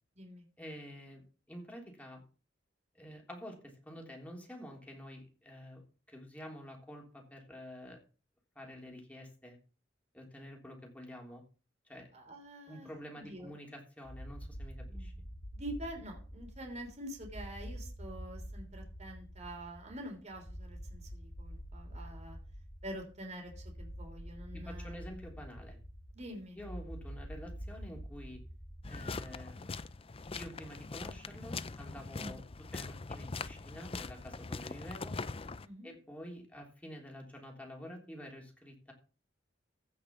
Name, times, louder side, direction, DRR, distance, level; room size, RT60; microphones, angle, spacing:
voice 1, 0.6-2.2 2.9-8.0 8.5-9.6 10.1-11.4 11.8-12.1 12.7-15.1 24.5-25.8 26.5-28.4 28.9-29.7 30.3-32.4 32.7-35.2 35.8-38.9, equal, 10° left, 0 dB, 3.4 m, -48 dB
voice 2, 12.1-13.6 14.8-15.2 15.5-22.4 22.8-25.0 26.1-26.6 32.1-32.3 35.6-35.9, right 1 dB, 40° right, 3 dB, 3.4 m, -46 dB
sound 1, 14.0-29.6, equal, 60° left, 2.9 m, -47 dB
sound 2, 28.8-35.7, left 4 dB, 30° left, 0.5 m, -42 dB
15.5 x 5.7 x 6.1 m, 0.36 s
head